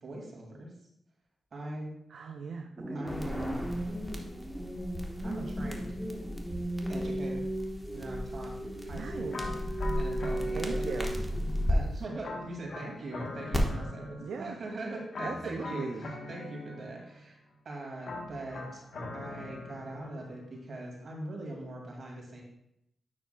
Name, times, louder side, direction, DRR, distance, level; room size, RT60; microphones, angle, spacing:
voice 1, 0.0-0.7 1.5-2.0 2.9-3.9 5.2-6.0 6.9-7.4 7.9-8.5 8.8-9.5 10.0-10.8 11.7-15.9 16.3-17.4 17.6-18.8 19.1-22.4, right 1 dB, 60° right, -1 dB, 2.3 m, -41 dB
voice 2, 2.1-3.2 8.9-9.4 10.5-11.2 14.2-14.6 15.2-16.1, right 5 dB, 75° right, 3 dB, 0.5 m, -39 dB
sound 1, 2.8-11.7, right 1 dB, 15° right, 1.6 m, -37 dB
sound 2, 3.1-11.7 13.5-13.6, left 1 dB, 5° left, 1.2 m, -36 dB
sound 3, 9.3-11.4 12.2-14.6 15.1-17.2 18.0-20.4, left 2 dB, 65° left, 1.2 m, -42 dB
9.6 x 5.8 x 2.3 m, 0.78 s
cardioid pair, 60°, 0 cm